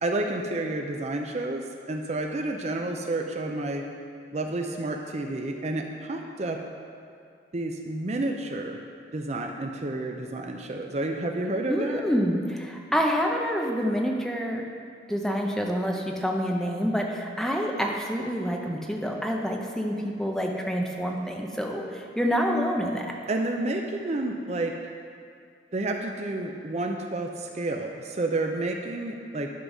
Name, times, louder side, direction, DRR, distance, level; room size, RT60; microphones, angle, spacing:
voice 1, 0.0-3.8 4.3-6.6 7.5-8.8 9.1-12.0 23.3-24.8 25.7-29.5, right 2 dB, 40° right, 3 dB, 0.5 m, -30 dB
voice 2, 11.7-14.6 15.1-23.1, equal, 5° left, 0 dB, 0.6 m, -27 dB
11.0 x 4.0 x 6.1 m, 2.3 s
head